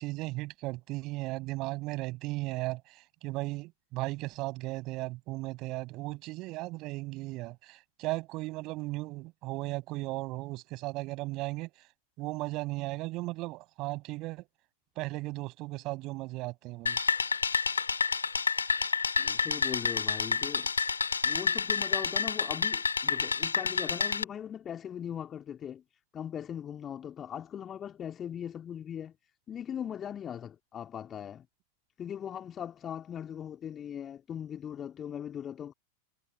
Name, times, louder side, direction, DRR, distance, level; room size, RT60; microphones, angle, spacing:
voice 1, 0.0-11.7 12.2-14.4 15.0-17.0, right 21 dB, 40° right, 6.3 m, -36 dB
sound 1, 16.9-24.2, left 5 dB, 75° left, 2.0 m, -29 dB
voice 2, 19.2-20.7 21.2-25.8 26.1-29.1 29.5-31.5 32.0-35.7, left 9 dB, 25° left, 3.1 m, -39 dB
figure-of-eight pair, 90°, 0 cm